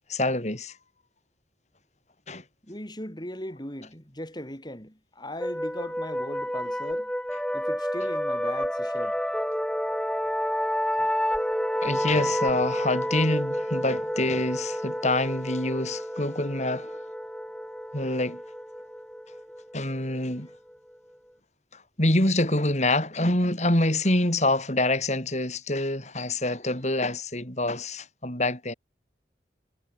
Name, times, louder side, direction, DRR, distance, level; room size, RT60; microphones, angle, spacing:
voice 1, 0.1-0.7 2.3-2.4 11.8-17.0 17.9-18.4 19.7-20.5 22.0-28.7, left 1 dB, 40° left, 8.0 m, -26 dB
voice 2, 2.6-7.1 7.5-9.1, left 1 dB, 25° left, 7.1 m, -38 dB
sound 1, 5.4-20.7, equal, 5° left, 5.6 m, -30 dB
head